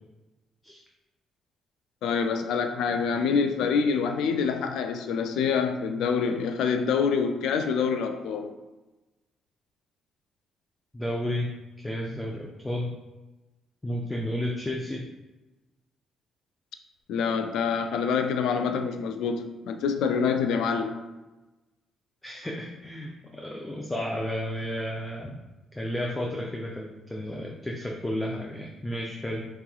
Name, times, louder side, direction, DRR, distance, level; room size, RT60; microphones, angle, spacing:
voice 1, 2.0-8.5 17.1-21.1, left 6 dB, 80° left, 7 dB, 0.3 m, -26 dB
voice 2, 10.9-13.0 13.8-15.1 22.2-25.3 25.8-29.5, left 1 dB, 15° left, -1 dB, 0.5 m, -32 dB
4.6 x 2.9 x 2.3 m, 1.1 s
supercardioid pair, 70°, 0 cm